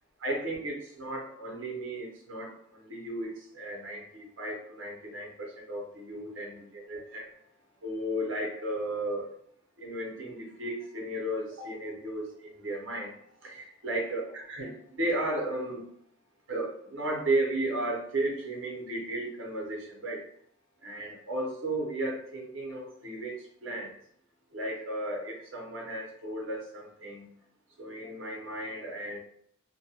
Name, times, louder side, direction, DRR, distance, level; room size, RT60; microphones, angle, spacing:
voice 1, 0.2-7.3 7.8-9.3 9.8-15.8 16.5-20.3 20.8-24.0 24.5-27.3 27.8-29.2, right 1 dB, 70° right, -1 dB, 0.7 m, -34 dB
2.2 x 2.2 x 2.7 m, 0.64 s
head